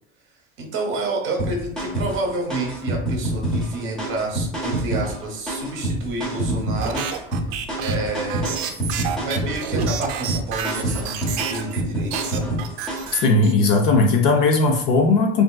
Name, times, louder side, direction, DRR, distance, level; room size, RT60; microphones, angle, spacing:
voice 1, 0.6-7.1 7.8-8.7 9.2-12.6, right 2 dB, 35° right, 1 dB, 0.8 m, -29 dB
sound 1, 1.4-13.2, right 1 dB, ahead, 0.6 m, -27 dB
sound 2, 6.8-11.8 12.1-13.8, right 9 dB, 70° right, 0.5 m, -30 dB
voice 2, 13.2-15.4, left 3 dB, 50° left, 2 dB, 0.5 m, -17 dB
3.4 x 2.5 x 2.3 m, 0.69 s
supercardioid pair, 160°, 35 cm